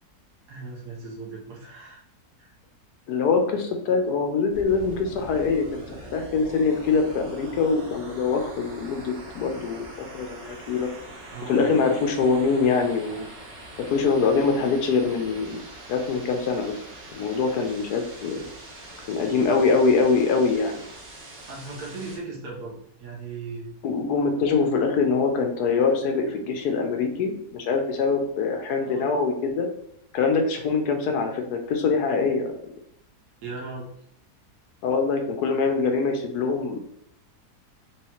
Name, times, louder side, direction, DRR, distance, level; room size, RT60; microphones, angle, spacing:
voice 1, 0.5-2.0 2.4-2.5 11.3-11.7 21.5-23.7 28.8-29.2 33.4-33.9, right 3 dB, 80° right, -2 dB, 1.6 m, -37 dB
voice 2, 3.1-9.9 10.1-10.9 11.4-13.3 13.8-15.6 15.9-16.7 17.1-18.4 19.1-20.8 23.8-29.7 30.1-32.6 34.8-36.8, left 4 dB, 75° left, 5 dB, 1.2 m, -24 dB
sound 1, 4.5-22.2, right 1 dB, 60° right, 1.5 m, -43 dB
4.7 x 3.1 x 3.0 m, 0.69 s
omnidirectional pair, 1.7 m